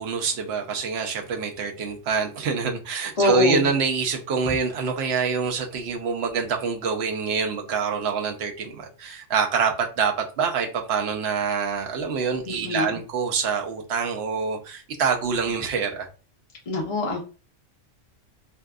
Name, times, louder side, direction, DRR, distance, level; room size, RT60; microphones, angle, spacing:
voice 1, 0.0-16.1, right 5 dB, 65° right, 0.8 m, -26 dB
voice 2, 3.2-3.7 12.5-13.0 16.7-17.2, left 2 dB, 40° left, 0.5 m, -24 dB
2.6 x 2.3 x 2.3 m
omnidirectional pair, 1.3 m